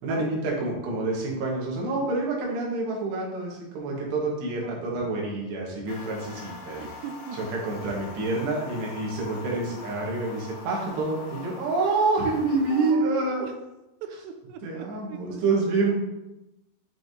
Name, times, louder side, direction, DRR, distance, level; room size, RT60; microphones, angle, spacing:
voice 1, 0.0-6.9 7.5-13.4 14.6-15.9, right 3 dB, 70° right, -3 dB, 3.3 m, -27 dB
voice 2, 4.6-5.1 6.8-7.4 12.7-13.5 14.0-15.6 15.9-16.0, right 6 dB, 90° right, 6 dB, 2.4 m, -39 dB
sound 1, 5.9-12.9, left 4 dB, 70° left, 2.7 m, -43 dB
8.0 x 5.7 x 2.8 m, 0.97 s
omnidirectional pair, 5.6 m